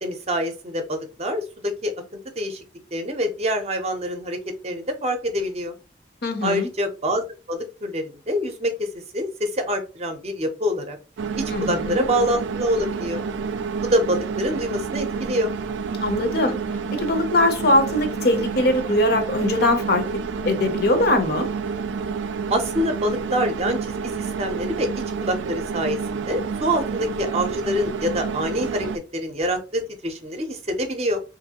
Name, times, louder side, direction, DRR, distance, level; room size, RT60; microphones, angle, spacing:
voice 1, 0.0-1.9 2.4-2.6 2.9-4.4 4.6-5.7 6.4-8.9 9.1-11.0 11.4-13.2 13.8-15.5 22.5-28.9 29.1-31.2, equal, 35° right, 0.6 m, -26 dB
voice 2, 6.2-6.7 11.5-12.0 16.0-16.6 16.9-21.5, left 1 dB, 55° left, 0.6 m, -21 dB
sound 1, 11.2-29.0, right 5 dB, 85° right, 0.4 m, -29 dB
3.0 x 2.6 x 2.8 m
head